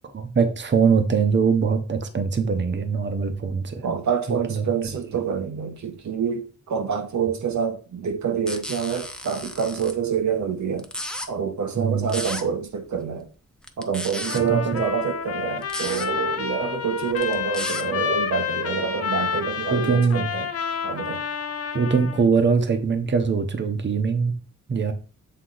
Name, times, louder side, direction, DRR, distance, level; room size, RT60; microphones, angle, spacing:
voice 1, 0.1-3.8 4.3-4.6 11.8-12.1 14.3-14.6 19.7-20.3 21.7-24.3 24.7-24.9, right 5 dB, 40° right, 0.8 m, -22 dB
voice 2, 3.8-10.9 11.3-13.3 13.8-20.5 20.8-21.2, right 7 dB, 70° right, 0.9 m, -27 dB
sound 1, 8.5-9.9 10.8-11.3 12.1-12.4 13.6-14.4 15.6-16.1 17.1-17.8, left 1 dB, 5° left, 0.7 m, -33 dB
Trumpet, 14.2-22.3, left 7 dB, 55° left, 0.7 m, -29 dB
7.7 x 3.7 x 3.9 m
wide cardioid pair, 100°, 30 cm